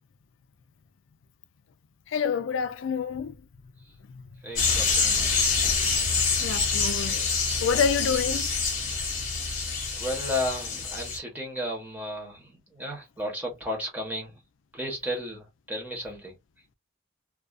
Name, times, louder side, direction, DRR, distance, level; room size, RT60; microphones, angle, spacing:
voice 1, 2.1-3.3 6.4-7.4 7.6-8.5, left 6 dB, 90° left, 0.4 m, -27 dB
voice 2, 4.4-5.5 9.9-14.3 14.7-16.3, left 1 dB, 10° right, 1.0 m, -34 dB
sound 1, 4.6-11.2, left 4 dB, 45° left, 1.1 m, -26 dB
2.4 x 2.3 x 2.4 m
head